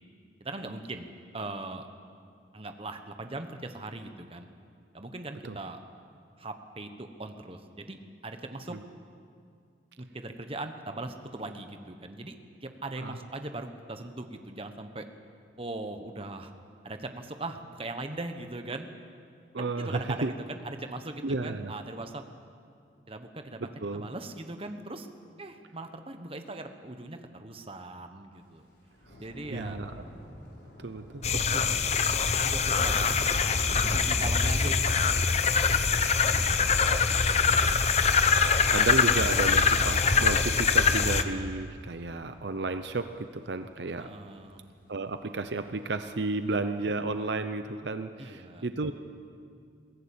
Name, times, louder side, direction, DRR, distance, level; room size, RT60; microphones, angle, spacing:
voice 1, 0.4-1.1 1.3-1.9 2.5-4.5 4.9-5.8 6.4-8.8 10.0-12.3 12.6-15.1 15.6-16.5 16.8-18.9 19.6-22.2 23.1-25.1 25.4-28.6 29.2-29.8 31.5-31.6 32.4-33.2 33.9-35.0 36.2-36.6 44.0-44.6 46.5-46.6 48.2-48.6, right 2 dB, 30° right, 7 dB, 1.2 m, -40 dB
voice 2, 19.5-20.3 21.2-21.7 23.6-24.1 29.5-30.0 30.8-31.4 36.1-36.7 38.7-44.1 44.9-48.9, right 3 dB, 65° right, 9 dB, 0.7 m, -32 dB
Thunder / Rain, 28.4-45.0 45.4-45.8 46.1-46.3, equal, 65° left, 5.4 m, -45 dB
sound 1, 31.2-41.2, left 5 dB, 35° left, 0.8 m, -24 dB
22.0 x 16.0 x 8.7 m, 2.3 s
head